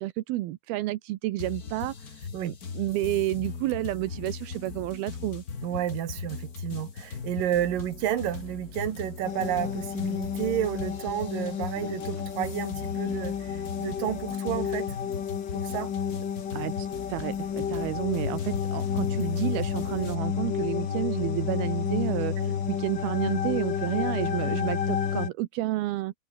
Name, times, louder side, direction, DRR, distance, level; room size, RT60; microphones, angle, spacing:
voice 1, 0.0-2.0 2.4-5.4 16.5-26.1, right 16 dB, 85° right, 2.8 m, -30 dB
sound 1, 1.4-20.1, left 5 dB, 35° left, 1.6 m, -39 dB
voice 2, 5.6-14.9 15.5-15.9 22.4-22.6, right 11 dB, 65° right, 3.4 m, -31 dB
sound 2, 8.1-9.9 10.3-12.5 12.9-13.6 13.9-14.0 14.3-14.4 15.7-15.8, right 2 dB, 30° right, 8.6 m, -54 dB
sound 3, 9.2-25.3, left 8 dB, 80° left, 1.0 m, -31 dB
omnidirectional pair, 4.4 m